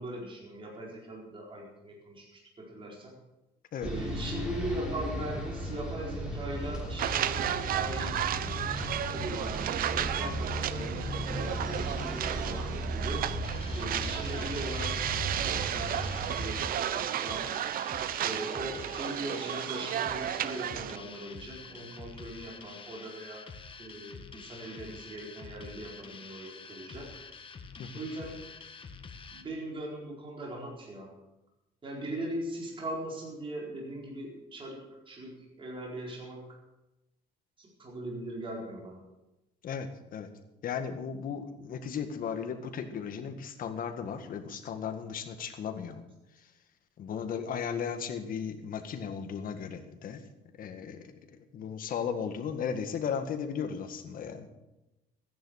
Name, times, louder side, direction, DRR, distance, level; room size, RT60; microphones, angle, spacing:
voice 1, 0.0-2.3 2.6-3.1 3.8-8.2 9.1-12.1 12.4-13.4 13.7-16.6 16.9-17.5 18.2-23.4 23.8-27.1 27.9-28.4 29.3-31.1 31.8-34.8 35.1-36.4 37.6-39.0, right 1 dB, 30° right, -2 dB, 4.5 m, -40 dB
sound 1, 3.8-16.5, right 1 dB, 5° right, 5.2 m, -36 dB
sound 2, 7.0-21.0, right 11 dB, 60° right, 0.7 m, -33 dB
sound 3, 13.4-29.4, left 5 dB, 30° left, 1.4 m, -47 dB
voice 2, 39.6-40.3 40.6-46.0 47.0-50.2 50.6-51.1 51.5-54.5, left 7 dB, 55° left, 7 dB, 1.8 m, -36 dB
15.0 x 10.5 x 6.5 m, 0.98 s
cardioid pair, 110°, 17 cm